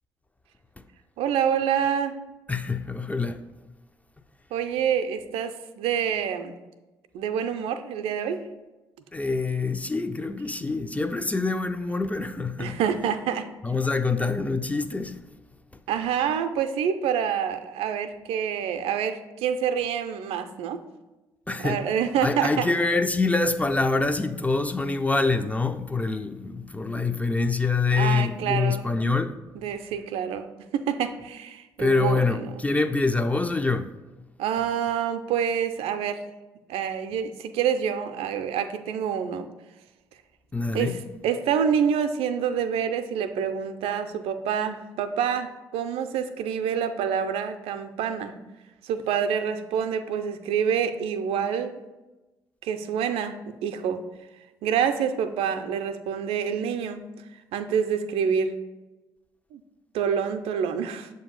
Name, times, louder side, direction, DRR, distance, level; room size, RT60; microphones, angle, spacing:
voice 1, 1.2-2.1 4.5-6.6 7.1-8.4 12.6-13.5 15.9-20.8 21.6-22.7 28.0-28.9 29.5-32.6 34.4-36.2 36.7-39.5 40.7-41.0 41.2-48.4 48.8-51.8 52.6-54.0 54.6-57.1 57.5-58.5 59.5-59.6 59.9-61.1, right 8 dB, 65° right, 0.4 m, -27 dB
voice 2, 2.5-3.4 9.1-12.8 13.6-15.2 21.5-21.8 22.2-29.3 31.8-33.9 40.5-41.0, left 3 dB, 15° left, 0.4 m, -25 dB
7.0 x 2.7 x 5.1 m
figure-of-eight pair, 45°, 11 cm